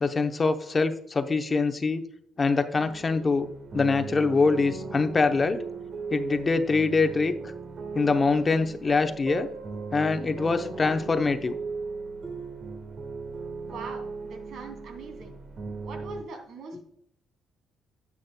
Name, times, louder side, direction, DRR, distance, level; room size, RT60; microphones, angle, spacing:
voice 1, 0.0-2.0 2.4-3.5 3.7-5.6 6.1-7.3 7.9-9.5 9.9-11.6, left 4 dB, 35° left, 8 dB, 0.8 m, -24 dB
sound 1, 2.7-16.2, right 4 dB, 45° right, 1.4 m, -37 dB
voice 2, 13.6-15.4 15.8-16.8, right 4 dB, 75° right, 3 dB, 2.7 m, -42 dB
9.9 x 8.6 x 2.2 m, 0.69 s
cardioid pair, 90°, 0 cm